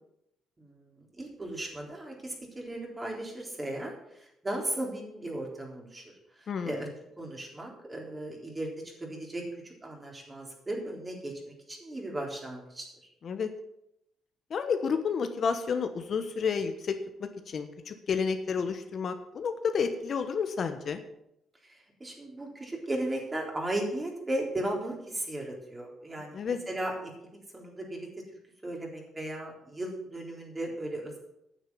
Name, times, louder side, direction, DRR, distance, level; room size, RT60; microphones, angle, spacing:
voice 1, 0.6-6.0 6.4-6.9 7.2-8.7 9.0-12.9 21.6-27.1 27.5-28.1 28.6-31.2, right 1 dB, 20° right, -1 dB, 3.8 m, -36 dB
voice 2, 6.5-6.8 13.2-13.5 14.5-21.0 26.3-26.6, left 6 dB, 55° left, 8 dB, 1.0 m, -31 dB
9.4 x 7.3 x 7.3 m, 0.80 s
cardioid pair, 90°, 0 cm